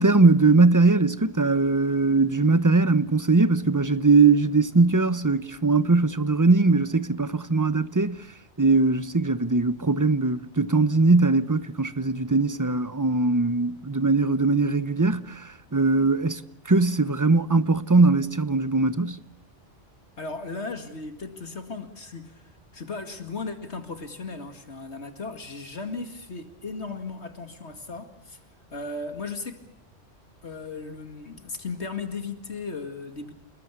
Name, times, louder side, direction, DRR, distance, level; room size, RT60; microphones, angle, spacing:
voice 1, 0.0-8.2 8.6-19.2, right 3 dB, 15° right, 0.9 m, -21 dB
voice 2, 20.2-28.4 28.7-29.6 30.4-33.3, left 3 dB, 65° left, 2.5 m, -36 dB
29.0 x 20.5 x 8.3 m
omnidirectional pair, 1.2 m